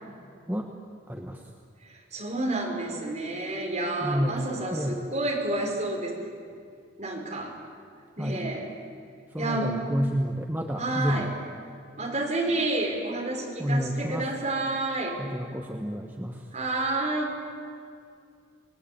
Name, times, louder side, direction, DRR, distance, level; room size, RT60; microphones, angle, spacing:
voice 1, 1.1-1.4 4.0-4.3 4.7-4.9 8.2-8.4 9.3-11.3 13.6-14.3 15.2-16.4, equal, 10° right, 1 dB, 1.3 m, -29 dB
voice 2, 2.1-6.1 7.0-7.5 8.2-8.7 9.4-9.8 10.8-11.3 12.0-15.2 16.5-17.4, right 2 dB, 35° right, -1 dB, 5.6 m, -29 dB
29.5 x 21.0 x 8.9 m, 2.3 s
head